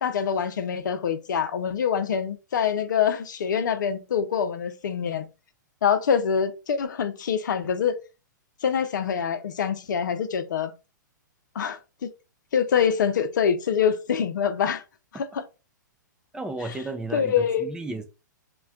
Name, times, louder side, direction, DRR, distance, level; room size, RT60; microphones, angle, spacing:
voice 1, 0.0-5.3 5.8-8.0 8.6-10.7 11.6-11.8 12.5-14.8 15.1-15.4 16.6-16.8 17.1-17.7, left 7 dB, 70° left, 0.5 m, -25 dB
voice 2, 16.3-18.0, right 2 dB, 5° right, 0.4 m, -33 dB
2.2 x 2.1 x 3.5 m
hypercardioid pair, 125°, 10 cm